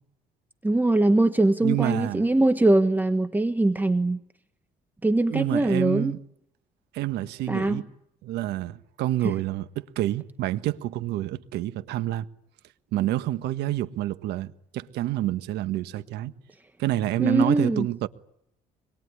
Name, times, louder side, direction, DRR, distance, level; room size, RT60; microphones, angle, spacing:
voice 1, 0.6-4.2 5.0-6.1 7.5-7.8 9.2-9.3 17.2-17.9, right 2 dB, 10° right, 1.4 m, -22 dB
voice 2, 1.6-2.3 5.3-6.2 6.9-7.8 8.2-12.3 12.9-16.3 16.8-18.1, right 14 dB, 85° right, 1.5 m, -28 dB
26.0 x 21.5 x 9.9 m
cardioid pair, 110°, 17 cm